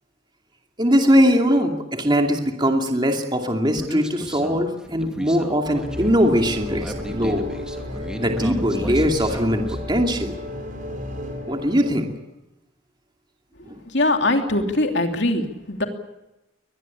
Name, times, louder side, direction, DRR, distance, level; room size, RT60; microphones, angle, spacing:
voice 1, 0.8-7.6 8.2-10.3 11.5-12.1 13.7-13.8, equal, 20° right, 3 dB, 2.6 m, -21 dB
Human voice, 3.8-9.8, equal, 5° right, 2.5 m, -36 dB
sound 1, 5.7-12.0, left 1 dB, 40° right, 5.9 m, -32 dB
voice 2, 13.9-15.8, left 2 dB, 55° left, 4 dB, 3.0 m, -21 dB
24.0 x 20.5 x 8.6 m, 0.93 s
head